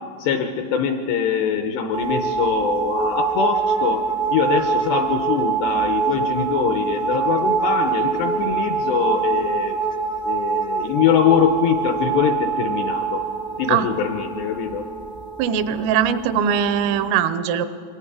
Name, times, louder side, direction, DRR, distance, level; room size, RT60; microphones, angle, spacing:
voice 1, 0.2-9.8 10.2-13.3 13.6-14.9 15.8-15.9, left 7 dB, 80° left, 6 dB, 2.5 m, -23 dB
sound 1, 1.9-17.1, right 6 dB, 5° right, 0.4 m, -25 dB
voice 2, 15.4-17.7, right 8 dB, 85° right, 12 dB, 3.3 m, -21 dB
26.0 x 21.0 x 4.8 m, 2.5 s
omnidirectional pair, 5.6 m